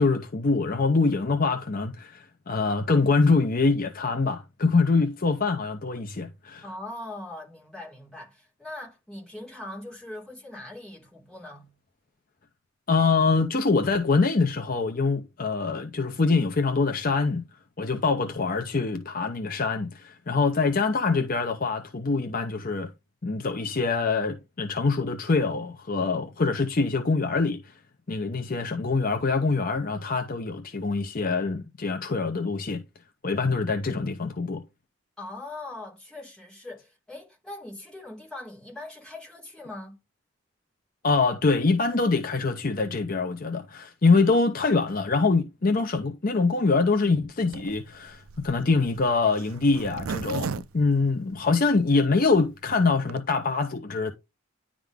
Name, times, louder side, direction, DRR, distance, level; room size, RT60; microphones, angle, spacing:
voice 1, 0.0-6.6 12.9-17.4 17.8-22.9 23.2-27.7 28.1-32.8 33.2-34.6 41.0-54.1, left 4 dB, 40° left, 0.6 m, -24 dB
voice 2, 6.6-11.7 35.2-40.0, left 2 dB, 5° left, 3.4 m, -41 dB
Zipper (clothing), 47.5-51.8 52.3-52.4 52.6-52.7 52.9-53.2, right 6 dB, 75° right, 0.4 m, -36 dB
10.0 x 3.7 x 3.5 m
head